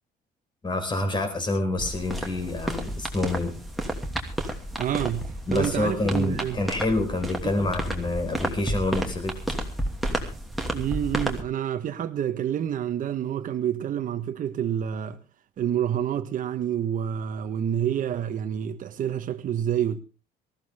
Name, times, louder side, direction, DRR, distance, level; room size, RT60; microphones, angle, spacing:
voice 1, 0.6-3.5 5.5-9.6, left 2 dB, 25° left, 4.8 m, -27 dB
sound 1, 1.8-11.4, right 1 dB, ahead, 2.8 m, -31 dB
voice 2, 4.8-6.6 7.4-7.7 10.7-15.2 15.6-20.0, right 9 dB, 50° right, 1.4 m, -28 dB
19.0 x 15.0 x 3.6 m
cardioid pair, 110°, 17 cm